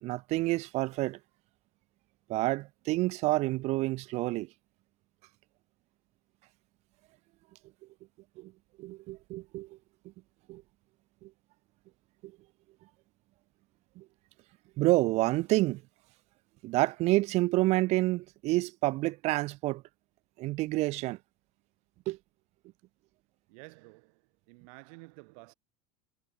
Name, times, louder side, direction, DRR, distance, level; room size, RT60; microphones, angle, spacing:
voice 1, 0.0-1.2 2.3-4.5 8.4-8.5 8.8-9.8 10.5-10.6 11.2-11.3 12.2-12.3 14.0-14.1 14.8-15.8 16.6-19.8 20.4-21.2 22.1-22.2, right 19 dB, 35° right, 0.4 m, -28 dB
voice 2, 23.5-25.5, right 32 dB, 65° right, 6.1 m, -52 dB
supercardioid pair, 155°, 19 cm